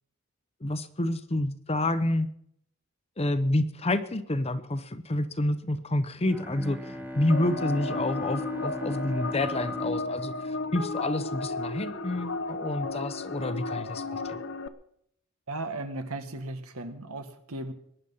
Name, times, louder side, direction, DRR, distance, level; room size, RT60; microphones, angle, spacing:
voice 1, 0.6-2.3 3.2-14.4, left 1 dB, 30° left, 12 dB, 0.8 m, -29 dB
Bowed string instrument, 6.3-11.2, equal, 10° right, 0.9 m, -39 dB
sound 1, 7.3-14.7, left 3 dB, 55° left, 0.8 m, -34 dB
voice 2, 15.5-17.7, right 2 dB, 75° right, 8 dB, 1.7 m, -36 dB
22.0 x 10.0 x 5.6 m, 0.74 s
head